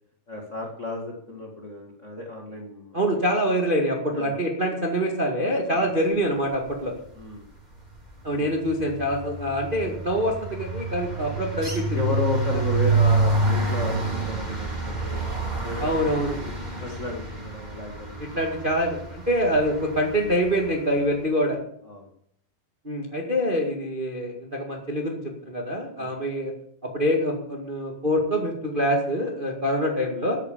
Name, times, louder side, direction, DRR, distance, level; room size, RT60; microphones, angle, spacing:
voice 1, 0.3-3.0 4.1-4.4 5.7-5.9 7.1-7.5 8.3-8.4 11.2-11.4 11.9-15.2 15.6-16.0 16.7-18.5 21.8-22.1 26.0-26.1, left 3 dB, 65° left, 0 dB, 0.7 m, -33 dB
voice 2, 2.9-6.9 8.2-11.9 15.8-16.3 18.2-21.6 22.8-26.5 26.8-30.4, equal, 85° right, 1 dB, 0.4 m, -25 dB
sound 1, 7.0-7.3 7.6-20.7, right 3 dB, 15° right, 2.1 m, -28 dB
13.0 x 8.9 x 7.0 m, 0.69 s
omnidirectional pair, 4.6 m